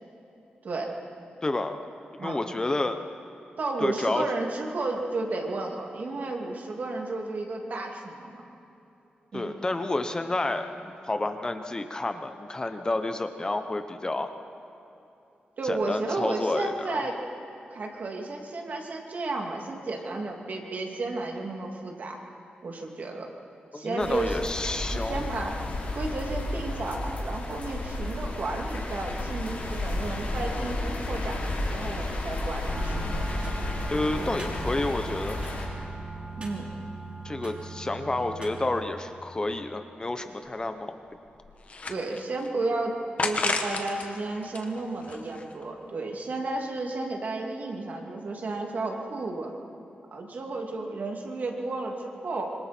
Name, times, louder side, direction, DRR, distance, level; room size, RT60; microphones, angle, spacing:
voice 1, 1.4-1.8 2.2-3.0 3.8-4.3 9.3-14.3 15.6-17.0 23.7-25.2 33.9-35.4 37.2-41.0, left 2 dB, 25° left, 7 dB, 1.0 m, -30 dB
voice 2, 3.6-8.4 9.3-9.5 15.6-17.2 17.7-22.2 22.6-23.3 23.7-24.4 24.9-25.6 25.9-33.1 34.2-34.3 36.4-36.7 41.9-43.0 43.2-49.5 50.1-52.5, right 2 dB, 60° right, 1 dB, 2.8 m, -32 dB
sound 1, 24.0-35.7, left 1 dB, 60° left, 5.7 m, -32 dB
sound 2, 32.7-38.8, right 3 dB, 35° right, 3.2 m, -39 dB
sound 3, 40.0-40.1 40.5-40.6 41.1-42.5 43.2-44.1 44.4-45.6, left 3 dB, 45° left, 1.6 m, -31 dB
26.0 x 25.5 x 4.5 m, 3.0 s
wide cardioid pair, 110°, 3 cm